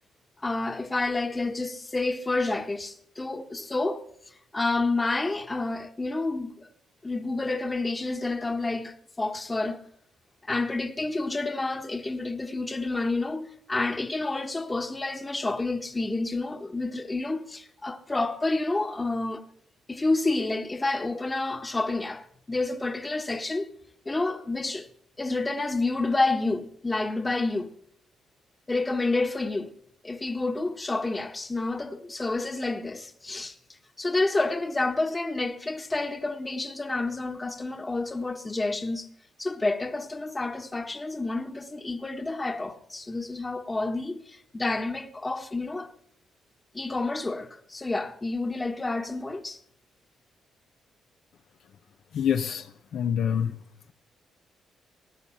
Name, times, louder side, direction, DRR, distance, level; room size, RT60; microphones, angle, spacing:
voice 1, 0.4-4.0 4.5-6.7 7.0-9.8 10.5-19.4 19.9-23.7 24.0-24.9 25.2-27.7 28.7-29.7 30.0-33.6 34.0-39.1 39.4-45.9 46.7-49.6, left 2 dB, 20° left, 1.4 m, -29 dB
voice 2, 52.1-53.6, left 8 dB, 65° left, 0.9 m, -26 dB
19.0 x 9.1 x 5.8 m
cardioid pair, 90°, 0 cm